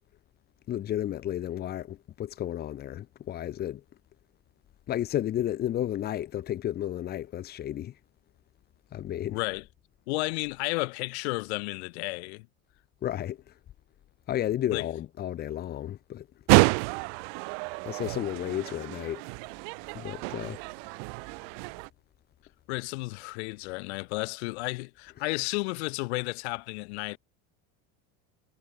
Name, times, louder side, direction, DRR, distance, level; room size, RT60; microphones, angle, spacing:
voice 1, 0.7-3.8 4.9-7.9 8.9-9.4 13.0-13.4 14.3-16.3 17.9-19.2 19.9-20.6, left 12 dB, 30° left, 2.1 m, -32 dB
voice 2, 9.3-9.6 10.1-12.5 14.7-14.9 22.7-27.2, left 25 dB, 75° left, 7.3 m, -32 dB
sound 1, 16.5-21.9, right 40 dB or more, 65° right, 3.7 m, -28 dB
cardioid pair, 170°, 32 cm